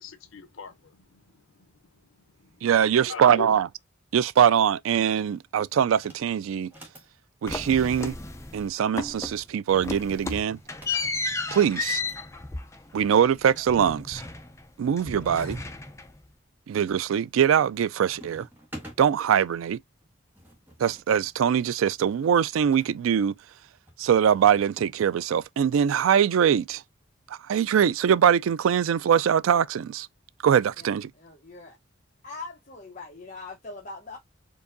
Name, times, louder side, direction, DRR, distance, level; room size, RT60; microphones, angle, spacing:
voice 1, 0.0-2.7 3.1-3.5, left 5 dB, 80° left, 0.6 m, -42 dB
voice 2, 2.6-3.7 4.1-6.7 7.4-8.1 8.5-10.6 11.5-12.0 12.9-14.2 14.8-15.6 16.7-18.5 19.0-19.8 20.8-23.3 24.0-26.8 27.5-30.1 30.4-31.1, right 8 dB, 85° right, 0.3 m, -22 dB
sound 1, 5.9-6.3 6.6-7.1 7.7-9.1 9.9-12.2 13.3-13.4 13.5-13.7 14.2-15.0 15.6-16.1 16.6-17.0 17.3-17.8 18.0-19.0 20.0-22.9 23.9-24.9, equal, 10° right, 1.3 m, -49 dB
sound 2, 7.5-8.7 9.0-9.4 9.7-14.7 15.0-16.3, left 3 dB, 15° left, 0.5 m, -33 dB
voice 3, 30.8-31.8 32.2-34.2, left 3 dB, 40° left, 0.9 m, -42 dB
4.5 x 2.6 x 2.5 m
head